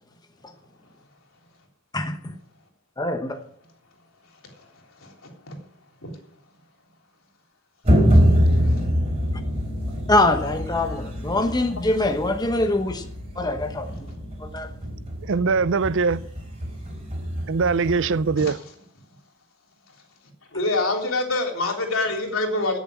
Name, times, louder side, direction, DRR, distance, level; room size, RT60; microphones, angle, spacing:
voice 1, 1.9-2.4 3.0-3.4 10.1-13.1 13.4-14.1 14.4-14.7, left 2 dB, 20° left, 1.1 m, -23 dB
voice 2, 5.0-5.6 6.0-6.2 8.1-8.2 8.5-8.8 13.9-14.0 18.4-18.6 20.5-22.8, left 2 dB, 75° left, 3.7 m, -26 dB
sound 1, 7.8-18.4, equal, 30° right, 4.5 m, -24 dB
voice 3, 15.2-16.2 17.5-18.6, right 4 dB, 60° right, 0.6 m, -22 dB
16.5 x 7.2 x 8.8 m
head